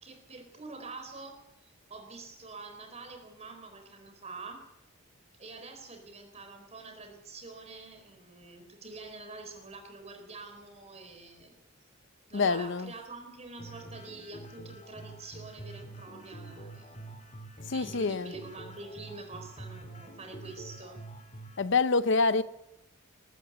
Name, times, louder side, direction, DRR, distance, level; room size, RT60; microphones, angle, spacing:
voice 1, 0.0-4.6 5.4-11.5 12.3-17.1 17.7-21.0, right 3 dB, 30° right, 4.2 m, -46 dB
voice 2, 12.3-12.9 17.7-18.3 21.6-22.4, left 4 dB, 60° left, 0.7 m, -26 dB
sound 1, 13.6-21.6, right 2 dB, 35° left, 2.6 m, -46 dB
20.5 x 14.0 x 9.3 m
head